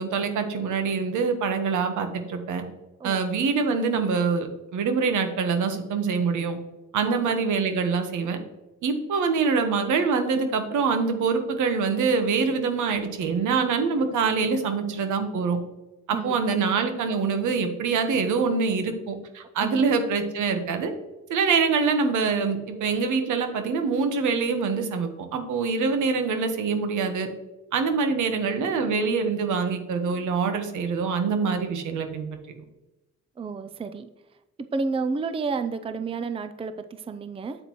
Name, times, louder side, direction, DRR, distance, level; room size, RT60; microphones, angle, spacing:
voice 1, 0.0-2.6 3.0-6.6 6.9-8.4 8.8-15.6 16.1-20.9 21.3-27.3 27.7-32.3, right 5 dB, 80° right, 7 dB, 1.3 m, -25 dB
voice 2, 7.0-7.3 16.1-16.5 19.6-19.8 33.4-34.1 34.7-37.6, right 4 dB, 20° right, 10 dB, 0.5 m, -31 dB
8.7 x 7.8 x 3.1 m, 1.0 s
cardioid pair, 90°, 30 cm